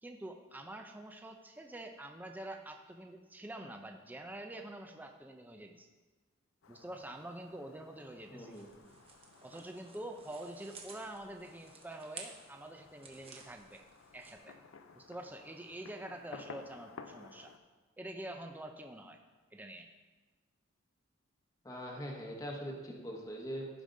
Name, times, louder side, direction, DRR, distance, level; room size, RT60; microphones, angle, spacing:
voice 1, 0.0-5.9 6.7-8.5 9.4-13.8 14.1-14.5 14.9-17.5 18.0-19.2 19.5-19.9, right 1 dB, 10° right, 4 dB, 0.5 m, -46 dB
Fireworks, 6.6-17.6, left 4 dB, 80° left, 0.6 m, -55 dB
voice 2, 8.3-8.8 21.6-23.7, equal, 15° left, 0 dB, 1.0 m, -42 dB
sound 1, 8.5-14.4, right 4 dB, 30° right, 1.0 m, -54 dB
15.0 x 5.1 x 3.8 m, 1.3 s
head